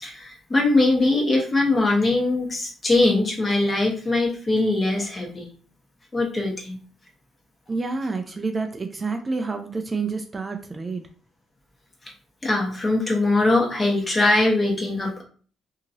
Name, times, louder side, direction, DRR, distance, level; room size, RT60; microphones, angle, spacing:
voice 1, 0.0-5.5 6.1-6.8 12.4-15.2, left 2 dB, 30° left, -1 dB, 1.1 m, -21 dB
voice 2, 7.7-11.0, right 4 dB, 25° right, 6 dB, 0.4 m, -28 dB
2.8 x 2.8 x 2.6 m, 0.42 s
cardioid pair, 90°, 0 cm